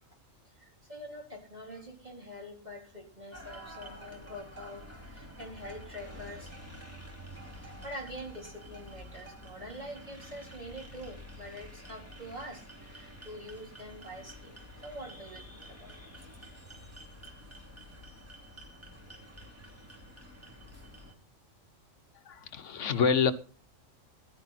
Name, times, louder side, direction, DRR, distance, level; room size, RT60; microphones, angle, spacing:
voice 1, 0.4-6.6 7.5-16.0 16.4-17.0, equal, 30° right, 4.0 m, -45 dB
sound 1, 3.3-21.1, equal, 10° right, 2.6 m, -49 dB
voice 2, 22.2-23.3, left 6 dB, 65° left, 1.3 m, -27 dB
15.0 x 11.5 x 4.1 m
omnidirectional pair, 1.4 m